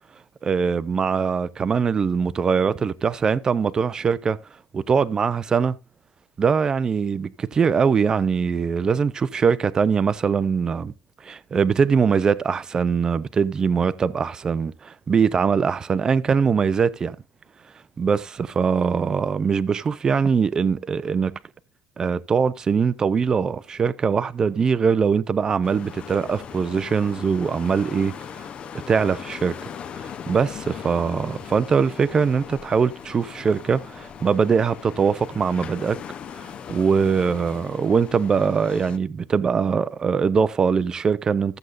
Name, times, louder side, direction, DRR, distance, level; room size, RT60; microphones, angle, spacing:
voice 1, 0.4-4.4 4.7-5.8 6.4-10.9 11.2-17.2 18.0-21.4 22.0-28.5 28.9-29.6 30.0-36.0 36.3-41.6, right 6 dB, 20° right, 0.5 m, -22 dB
sound 1, 25.6-39.0, left 8 dB, 30° left, 0.7 m, -39 dB
14.5 x 7.8 x 2.5 m
cardioid pair, 175°, 4 cm